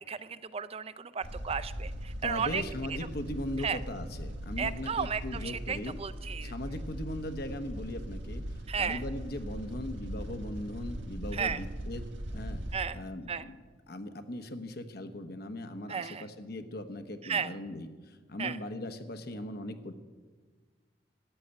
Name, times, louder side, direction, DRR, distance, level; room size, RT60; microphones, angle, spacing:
voice 1, 0.1-2.6 2.9-3.0 3.6-3.8 4.6-6.5 8.7-9.0 11.3-11.6 12.7-13.0 13.3-13.5 15.9-16.3 17.2-17.5 18.4-18.6, right 6 dB, 35° right, 14 dB, 0.5 m, -34 dB
sound 1, 1.2-12.8, equal, 85° right, 1.5 m, -40 dB
voice 2, 2.2-6.0 6.4-8.4 8.8-12.0 12.3-12.6 12.9-13.5 13.9-19.9, left 1 dB, 60° left, 7 dB, 1.1 m, -39 dB
13.5 x 8.3 x 8.8 m, 1.4 s
head